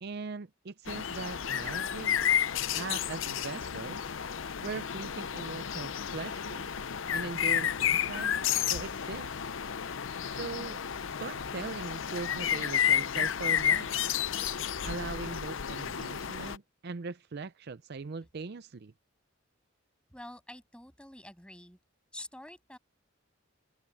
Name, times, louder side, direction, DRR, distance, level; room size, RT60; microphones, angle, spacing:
voice 1, 0.0-2.2 2.7-4.1 4.6-6.7 7.1-8.3 8.6-9.3 10.3-10.8 11.2-13.9 14.8-18.9, right 4 dB, 55° right, 0.5 m, -40 dB
sound 1, 0.9-16.6, left 9 dB, 70° left, 0.6 m, -31 dB
voice 2, 20.1-21.8 22.1-22.8, left 1 dB, 5° left, 7.3 m, -47 dB
open air
head